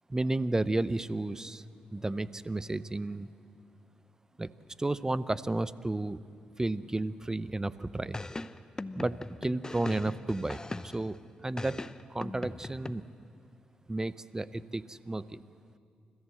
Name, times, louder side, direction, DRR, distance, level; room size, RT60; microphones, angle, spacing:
voice 1, 0.1-1.6 1.9-3.3 4.4-4.5 4.8-6.2 6.6-8.2 9.0-10.6 10.8-11.8 12.1-13.0 13.9-15.4, right 2 dB, 20° right, 16 dB, 0.6 m, -32 dB
sound 1, 8.1-11.2 11.6-12.9, left 2 dB, 20° left, 0.7 m, -40 dB
29.0 x 14.5 x 7.7 m, 2.4 s
cardioid pair, 60°, 3 cm